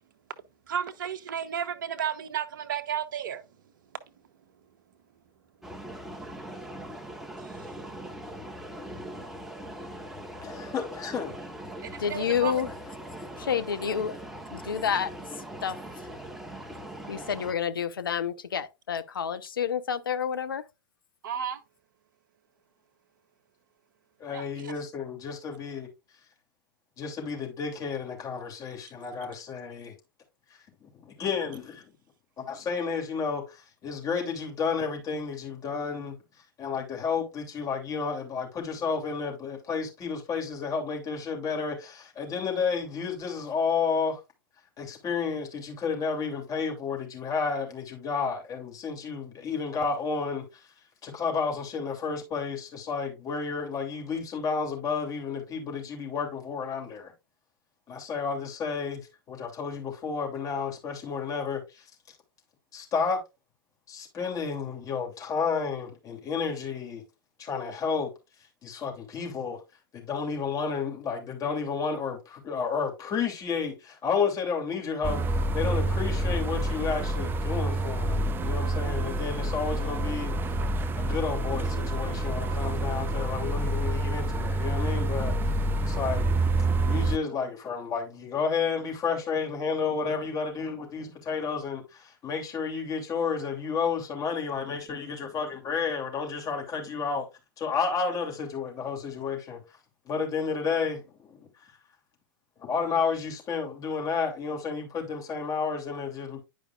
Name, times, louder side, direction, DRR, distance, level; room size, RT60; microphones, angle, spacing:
voice 1, 0.7-3.4 7.4-7.7 11.8-12.5 21.2-21.6 24.3-24.7, right 9 dB, 65° right, 0.8 m, -33 dB
sound 1, 5.6-17.5, right 1 dB, 5° right, 1.1 m, -41 dB
voice 2, 10.4-11.4 24.2-25.9 27.0-29.9 30.5-31.9 32.4-36.2 36.6-44.2 44.8-50.7 51.0-57.1 57.9-59.0 59.3-61.9 62.7-63.2 63.9-67.0 67.4-68.1 68.6-69.6 69.9-80.3 80.9-85.5 85.8-86.2 86.8-97.2 97.6-99.6 100.0-101.5 102.6-106.4, left 5 dB, 30° left, 2.8 m, -31 dB
voice 3, 12.0-12.7 13.4-14.2 14.5-15.1 15.6-15.8 17.1-20.6, left 8 dB, 75° left, 0.8 m, -29 dB
sound 2, 75.0-87.2, right 1 dB, 20° right, 0.5 m, -27 dB
10.5 x 5.0 x 2.4 m
figure-of-eight pair, 95°, 12 cm